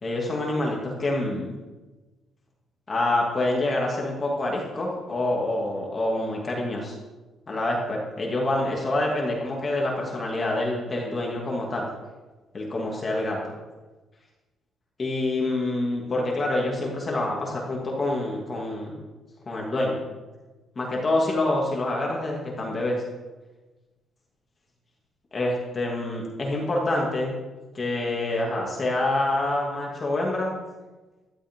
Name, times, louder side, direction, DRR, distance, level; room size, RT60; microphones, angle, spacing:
voice 1, 0.0-1.5 2.9-7.0 7.5-11.9 12.5-13.4 15.0-19.0 19.5-20.0 20.8-23.0 25.3-27.3 27.7-30.5, left 2 dB, 25° left, -2 dB, 2.5 m, -26 dB
17.5 x 12.5 x 3.8 m, 1.2 s
cardioid pair, 180°, 0 cm